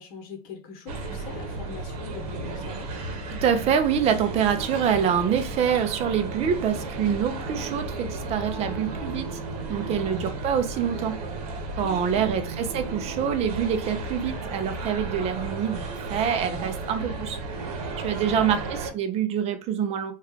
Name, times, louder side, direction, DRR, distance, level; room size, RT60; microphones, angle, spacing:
voice 1, 0.0-2.9 9.8-10.1 11.8-12.5 18.1-18.7, left 5 dB, 50° left, 0.9 m, -42 dB
sound 1, 0.9-18.9, right 2 dB, 75° right, 0.9 m, -34 dB
voice 2, 3.3-9.3 9.7-11.2 11.8-17.4 18.0-20.1, right 8 dB, 35° right, 0.5 m, -26 dB
3.1 x 2.3 x 3.6 m
supercardioid pair, 140°, 20 cm